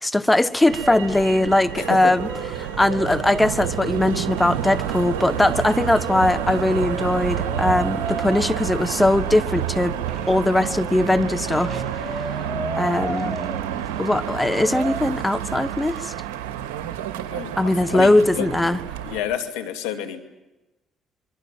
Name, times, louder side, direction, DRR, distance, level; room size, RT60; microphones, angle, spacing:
voice 1, 0.0-2.3 2.6-10.0 10.3-12.0 12.8-13.4 14.0-16.1 17.6-18.8, left 1 dB, 10° left, 1.6 m, -20 dB
Brass instrument, 0.7-1.4 1.7-4.2 5.2-8.4 9.8-13.6 14.6-15.0, right 1 dB, 5° right, 2.1 m, -34 dB
Motor vehicle (road), 0.7-19.2, right 10 dB, 85° right, 2.3 m, -29 dB
voice 2, 1.8-2.1 17.3-18.5 19.0-20.2, left 9 dB, 85° left, 2.4 m, -29 dB
sound 1, 10.0-16.4, right 3 dB, 30° right, 6.2 m, -50 dB
27.5 x 23.0 x 7.5 m
supercardioid pair, 60°, 0 cm